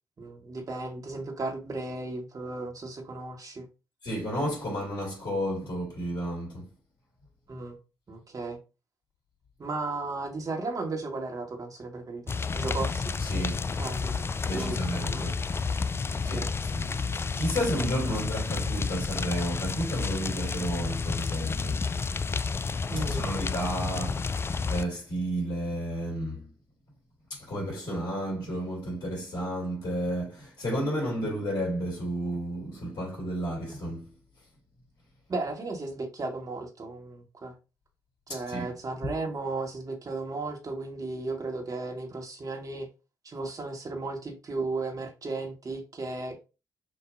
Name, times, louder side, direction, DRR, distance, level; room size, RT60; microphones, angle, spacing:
voice 1, 0.2-3.7 7.5-7.8 8.1-8.6 9.6-13.2 13.8-14.8 15.1-15.3 16.1-16.5 22.9-23.2 35.3-37.5 38.3-42.9 43.2-46.4, right 3 dB, 40° right, 1.4 m, -35 dB
voice 2, 4.0-6.7 13.2-13.8 14.4-15.8 16.2-21.9 23.0-26.5 27.3-34.2 38.3-38.7, equal, 50° left, 2.7 m, -32 dB
sound 1, 12.3-24.8, left 4 dB, 25° left, 0.3 m, -30 dB
6.3 x 2.6 x 2.6 m
hypercardioid pair, 40°, 9 cm